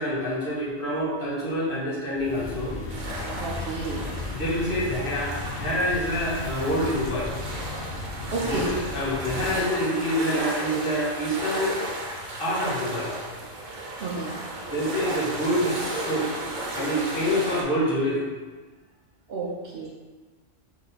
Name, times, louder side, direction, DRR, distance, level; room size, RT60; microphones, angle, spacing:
voice 1, 0.0-2.8 4.3-7.3 8.5-11.7 12.4-13.1 14.7-16.3 16.7-18.2, equal, 45° left, -7 dB, 1.2 m, -27 dB
sound 1, 2.1-9.6, left 2 dB, 60° left, 0.9 m, -35 dB
sound 2, 2.9-17.6, right 1 dB, 75° right, 1.2 m, -34 dB
voice 2, 3.3-4.1 8.3-8.7 14.0-14.4 19.3-19.9, right 3 dB, 60° right, -3 dB, 0.8 m, -31 dB
4.0 x 3.1 x 4.0 m, 1.3 s
omnidirectional pair, 1.3 m